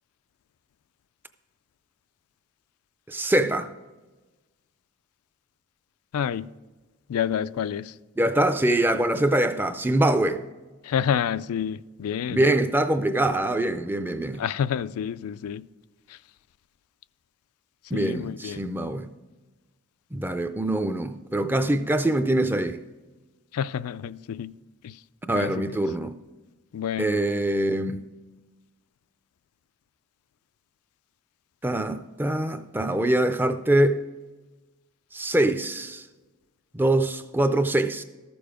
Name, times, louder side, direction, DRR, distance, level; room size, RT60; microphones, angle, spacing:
voice 1, 3.1-3.7 8.2-10.4 12.3-14.4 17.9-19.1 20.1-22.8 25.3-26.1 27.0-28.0 31.6-34.0 35.1-36.0 36.7-38.0, right 1 dB, 10° right, 0.4 m, -24 dB
voice 2, 6.1-6.5 7.1-7.9 10.8-12.4 14.4-15.6 17.9-18.6 23.5-24.5 24.8-24.9 25.3-25.5 26.7-27.2, left 8 dB, 85° left, 0.4 m, -28 dB
13.5 x 6.9 x 5.0 m
head